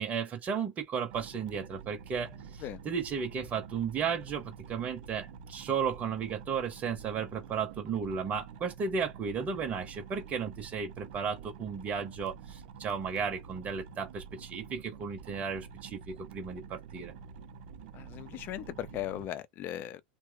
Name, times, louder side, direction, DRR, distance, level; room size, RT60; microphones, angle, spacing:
voice 1, 0.0-17.1, right 6 dB, 30° right, 0.9 m, -34 dB
sound 1, 1.1-19.3, right 6 dB, 55° right, 0.6 m, -48 dB
voice 2, 17.9-20.0, left 12 dB, 40° left, 0.5 m, -38 dB
3.2 x 2.1 x 3.4 m
figure-of-eight pair, 90°, 5 cm